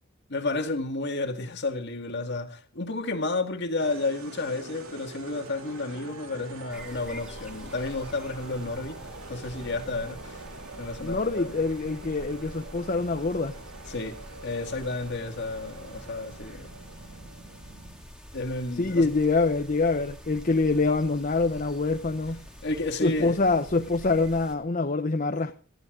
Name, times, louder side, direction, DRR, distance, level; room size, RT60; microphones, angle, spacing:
voice 1, 0.3-9.0 9.3-10.4 10.8-11.5 13.9-14.2 14.4-16.7 18.3-19.1 22.6-23.4, left 2 dB, 55° left, 1.9 m, -31 dB
sound 1, 3.8-18.0, right 3 dB, 90° right, 2.7 m, -45 dB
sound 2, 6.7-24.6, equal, 5° right, 2.3 m, -46 dB
voice 2, 11.0-13.6 18.7-22.4 23.0-25.5, left 3 dB, 40° left, 0.8 m, -25 dB
18.5 x 14.5 x 3.7 m
head